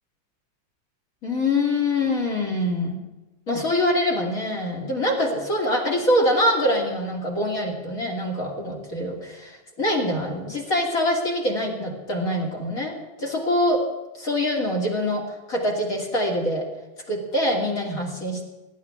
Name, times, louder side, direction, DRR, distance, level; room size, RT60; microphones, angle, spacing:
voice 1, 1.2-3.0 3.5-13.8 14.2-16.6 17.1-18.4, left 1 dB, 40° left, 1 dB, 3.2 m, -24 dB
24.0 x 12.0 x 3.7 m, 1.1 s
omnidirectional pair, 2.2 m